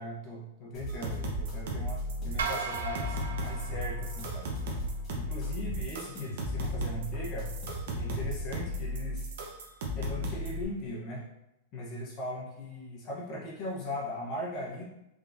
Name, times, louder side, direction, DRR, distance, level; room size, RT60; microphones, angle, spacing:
voice 1, 0.0-4.5 5.1-7.5 7.9-9.3 10.0-11.2 11.7-14.8, left 1 dB, 35° left, -4 dB, 0.9 m, -39 dB
sound 1, 0.7-3.1 3.4-5.1 5.4-8.6, right 3 dB, 20° left, 1.5 m, -40 dB
sound 2, 0.9-10.6, left 1 dB, 65° right, 0.9 m, -35 dB
sound 3, 2.4-4.7, right 5 dB, 90° right, 0.4 m, -37 dB
3.7 x 3.5 x 2.7 m, 0.88 s
supercardioid pair, 150°, 0 cm